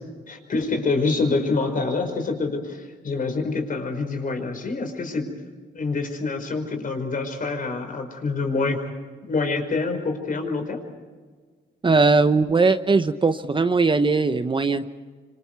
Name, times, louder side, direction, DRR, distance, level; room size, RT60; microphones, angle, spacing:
voice 1, 0.3-5.3 5.7-8.8 9.2-10.8, left 3 dB, 45° left, 5 dB, 5.1 m, -26 dB
voice 2, 11.8-14.9, right 4 dB, 25° right, 10 dB, 0.9 m, -19 dB
27.5 x 26.0 x 4.7 m, 1.5 s
cardioid pair, 90°, 20 cm